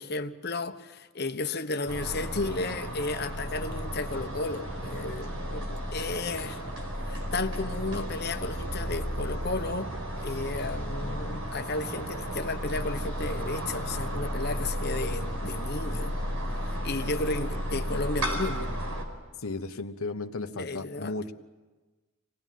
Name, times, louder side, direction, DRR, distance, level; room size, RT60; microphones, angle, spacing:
voice 1, 0.0-6.6 7.0-9.9 10.2-16.2 16.6-18.8 20.6-21.1, left 3 dB, 50° left, 8 dB, 1.1 m, -33 dB
sound 1, 1.9-19.0, equal, 85° right, 4.8 m, -33 dB
voice 2, 19.4-21.3, left 3 dB, 85° left, 5 dB, 1.2 m, -35 dB
25.0 x 19.0 x 9.3 m, 1.2 s
head